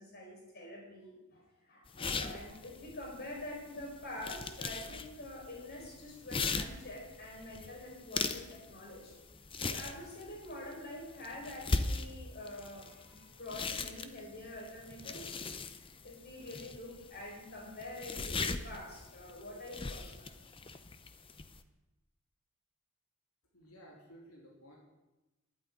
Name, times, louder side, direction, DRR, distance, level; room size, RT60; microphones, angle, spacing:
voice 1, 0.0-9.1 9.6-15.4 16.0-20.4, left 1 dB, 45° left, -1 dB, 4.6 m, -46 dB
sound 1, 1.9-21.6, left 3 dB, 25° left, 0.7 m, -40 dB
voice 2, 23.5-24.8, equal, 80° left, -2 dB, 2.9 m, -55 dB
11.5 x 9.1 x 9.3 m, 1.0 s
head